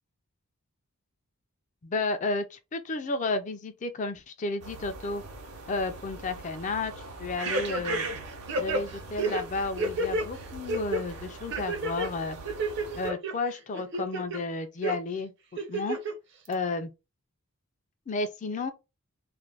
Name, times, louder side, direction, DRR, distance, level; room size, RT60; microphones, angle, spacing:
voice 1, 1.8-5.2 5.7-6.9 7.2-8.0 8.6-12.4 13.0-16.0 16.5-16.9 18.1-18.7, left 3 dB, 35° left, 0.3 m, -32 dB
sound 1, 4.6-13.1, right 4 dB, 90° right, 0.7 m, -41 dB
sound 2, 7.5-8.2 8.5-10.3 10.7-11.0 11.5-12.1 12.5-13.3 13.7-14.4 14.8-15.0 15.6-16.1 16.5-16.6, right 2 dB, 55° right, 0.6 m, -30 dB
2.5 x 2.1 x 3.2 m
head